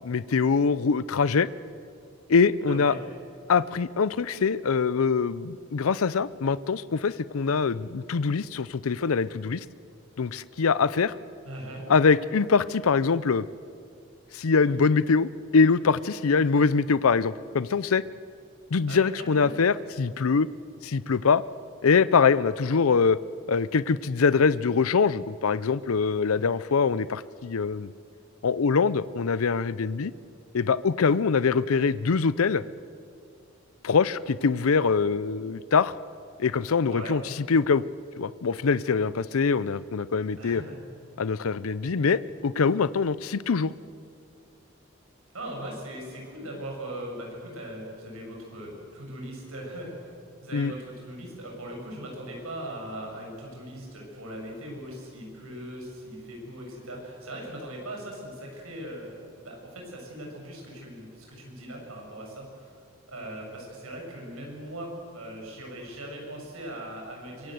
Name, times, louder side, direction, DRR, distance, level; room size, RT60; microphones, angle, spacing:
voice 1, 0.0-1.5 2.3-2.9 3.5-9.6 10.2-11.1 11.9-13.5 14.3-18.0 18.7-20.5 20.8-21.4 21.8-23.2 23.5-27.9 28.4-30.1 30.5-32.6 33.8-35.9 36.4-37.8 38.2-40.6 41.2-43.7 50.5-50.7, left 5 dB, 85° left, 17 dB, 0.5 m, -23 dB
voice 2, 2.7-3.0 11.4-11.8 18.9-19.6 36.9-37.2 40.4-40.8 45.3-50.1 50.4-62.7 63.1-67.5, right 1 dB, 90° right, 0 dB, 7.6 m, -39 dB
24.0 x 22.5 x 7.9 m, 2.5 s
head